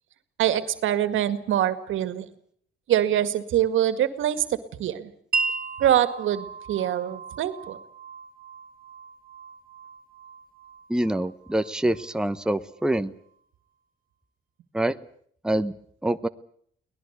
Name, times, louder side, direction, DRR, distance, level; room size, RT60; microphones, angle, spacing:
voice 1, 0.4-2.3 2.9-5.1 5.8-7.8, right 11 dB, 80° right, 12 dB, 2.0 m, -24 dB
Wind chime, 5.3-13.0, right 4 dB, 45° right, 1.4 m, -36 dB
voice 2, 10.9-13.1 14.7-15.0 15.4-15.7 16.0-16.3, right 1 dB, 5° right, 11 dB, 1.0 m, -25 dB
23.0 x 19.0 x 8.1 m, 0.63 s
cardioid pair, 90°, 20 cm